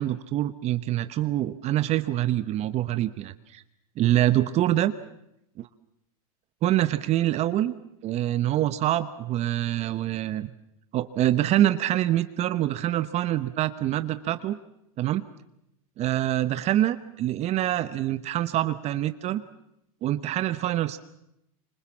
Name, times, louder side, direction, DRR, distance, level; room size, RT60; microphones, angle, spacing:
voice 1, 0.0-3.6 4.0-4.9 5.6-5.7 6.6-7.7 8.0-10.5 10.9-14.6 15.0-15.2 16.0-19.4 20.0-21.0, right 13 dB, 35° right, 12 dB, 1.0 m, -25 dB
26.0 x 25.0 x 7.3 m, 0.81 s
supercardioid pair, 125°, 19 cm